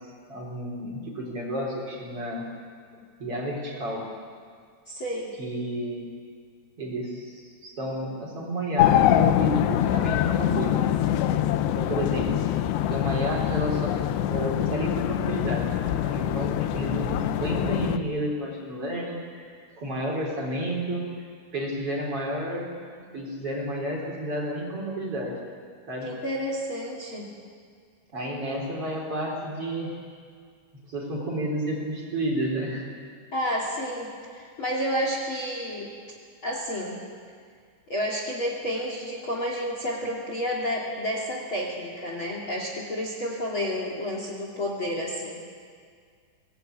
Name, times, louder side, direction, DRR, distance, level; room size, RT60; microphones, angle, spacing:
voice 1, 0.3-2.5 3.2-4.1 5.4-6.0 6.8-10.8 11.6-12.5 12.9-15.7 16.0-21.1 21.5-22.7 23.1-25.4 25.9-26.1 28.1-29.9 30.9-32.9, right 1 dB, 35° right, -2 dB, 4.4 m, -31 dB
voice 2, 4.9-5.3 26.0-27.3 33.3-35.9 36.4-37.0 37.9-45.4, equal, 35° left, -1 dB, 2.9 m, -30 dB
sound 1, 8.8-18.0, left 11 dB, 85° left, 3.0 m, -24 dB
23.5 x 18.5 x 9.3 m, 2.1 s
omnidirectional pair, 4.9 m